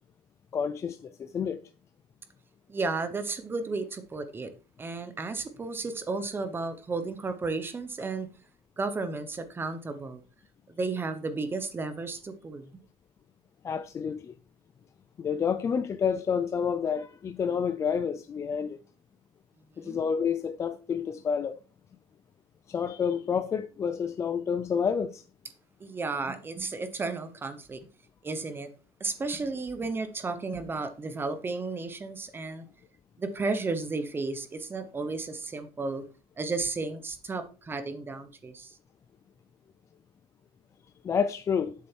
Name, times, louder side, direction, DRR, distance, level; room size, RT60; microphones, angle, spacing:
voice 1, 0.5-1.6 13.6-14.3 15.2-18.8 19.8-21.6 22.7-25.2 41.0-41.7, left 7 dB, 20° left, 0.4 m, -29 dB
voice 2, 2.7-4.5 4.8-8.3 8.8-10.2 10.8-12.8 19.8-20.0 25.8-27.8 28.2-28.7 29.0-32.7 33.2-36.0 36.4-38.7, right 3 dB, 15° right, 0.9 m, -33 dB
7.6 x 6.5 x 4.5 m
cardioid pair, 170°, 14 cm